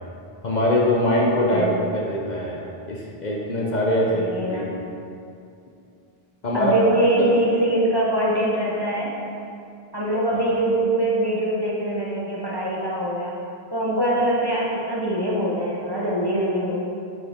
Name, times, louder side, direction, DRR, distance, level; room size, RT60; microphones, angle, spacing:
voice 1, 0.4-2.6 2.9-4.7 6.4-6.7 7.2-7.3 10.3-10.4, left 1 dB, 45° left, -3 dB, 0.9 m, -22 dB
voice 2, 4.1-4.7 6.5-9.2 9.9-13.3 13.7-16.8, right 1 dB, 25° right, -5 dB, 1.0 m, -23 dB
7.3 x 6.1 x 3.6 m, 2.5 s
omnidirectional pair, 1.1 m